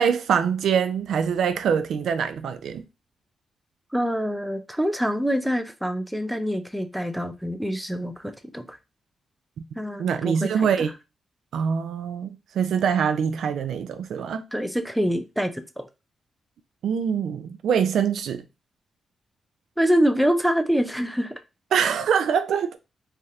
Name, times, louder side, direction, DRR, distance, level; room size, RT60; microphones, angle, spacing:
voice 1, 0.0-2.8 10.0-10.9 11.5-14.4 16.8-18.4 21.7-22.8, right 7 dB, 80° right, 0.3 m, -24 dB
voice 2, 3.9-8.8 9.8-10.9 14.5-15.9 19.8-21.3, equal, ahead, 0.4 m, -25 dB
3.2 x 2.4 x 2.7 m
cardioid pair, 110°, 0 cm